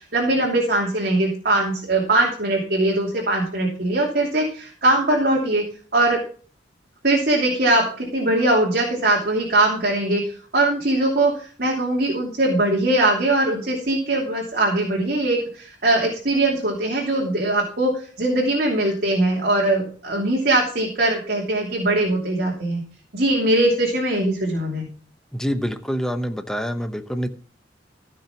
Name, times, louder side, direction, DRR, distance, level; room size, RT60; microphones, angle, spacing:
voice 1, 0.0-5.6 5.9-6.2 7.0-22.8 23.1-24.9, right 2 dB, 55° right, -2 dB, 2.9 m, -21 dB
voice 2, 25.3-27.3, equal, 5° left, 8 dB, 0.8 m, -26 dB
15.0 x 6.0 x 5.8 m, 0.42 s
head